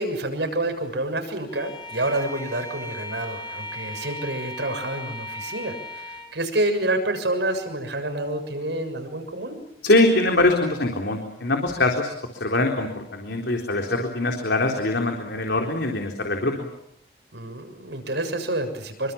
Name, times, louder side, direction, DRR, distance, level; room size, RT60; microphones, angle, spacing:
voice 1, 0.0-6.0 6.3-9.6 17.3-19.1, right 1 dB, 90° right, 7 dB, 7.1 m, -28 dB
Bowed string instrument, 1.5-6.4, left 1 dB, 25° left, 5.8 m, -37 dB
voice 2, 9.8-16.7, left 2 dB, 80° left, 2 dB, 3.9 m, -23 dB
28.0 x 24.5 x 7.3 m, 0.75 s
head